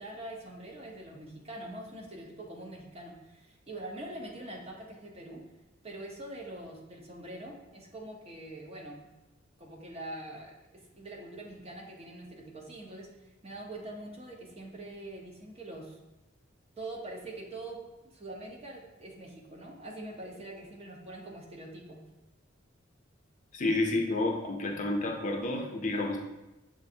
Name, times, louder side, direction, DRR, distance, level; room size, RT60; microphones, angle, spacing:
voice 1, 0.0-5.4 5.8-9.1 9.6-10.5 10.9-16.0 16.8-17.8 18.0-22.0, right 1 dB, 30° right, 0 dB, 0.7 m, -44 dB
voice 2, 23.5-26.2, left 2 dB, 40° left, 2 dB, 0.5 m, -30 dB
6.9 x 2.5 x 2.7 m, 0.99 s
head